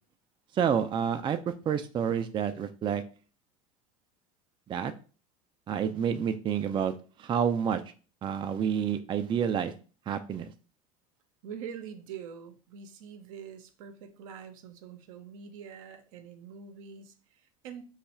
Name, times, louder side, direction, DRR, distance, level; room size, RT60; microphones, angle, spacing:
voice 1, 0.5-3.0 4.7-4.9 5.7-7.8 8.2-9.7 10.1-10.5, right 8 dB, 25° right, 8 dB, 0.4 m, -29 dB
voice 2, 11.4-17.8, right 7 dB, 75° right, 7 dB, 0.6 m, -44 dB
2.9 x 2.4 x 4.1 m, 0.37 s
hypercardioid pair, 80°, 18 cm